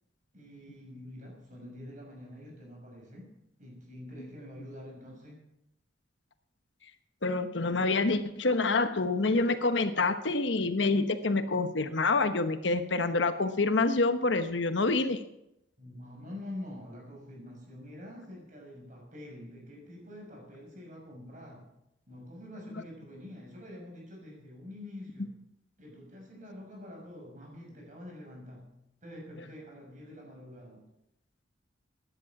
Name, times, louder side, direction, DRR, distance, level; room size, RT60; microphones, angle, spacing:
voice 1, 0.3-3.3 3.6-5.4 15.8-21.7 22.1-25.3 25.8-28.7 29.0-30.8, left 1 dB, 40° right, 0 dB, 6.2 m, -46 dB
voice 2, 7.2-15.2, left 3 dB, 70° left, 9 dB, 1.1 m, -27 dB
16.0 x 10.5 x 6.0 m, 0.82 s
head